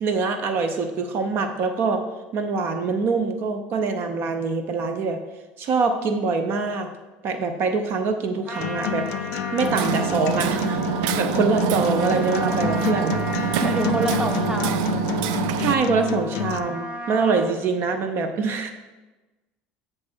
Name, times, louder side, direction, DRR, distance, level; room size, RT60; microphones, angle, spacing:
voice 1, 0.0-2.0 2.3-5.2 5.6-6.9 7.2-13.2 15.6-18.7, right 4 dB, 55° right, 7 dB, 0.7 m, -24 dB
Trumpet, 8.4-17.5, equal, 30° right, 1.3 m, -35 dB
Acoustic guitar, 8.6-16.6, left 13 dB, 65° left, 0.3 m, -29 dB
Hammer, 9.6-15.8, right 10 dB, 75° right, 0.3 m, -26 dB
voice 2, 13.6-15.0, right 2 dB, 10° right, 6 dB, 0.9 m, -26 dB
8.3 x 3.3 x 6.2 m, 1.1 s
supercardioid pair, 85°, 5 cm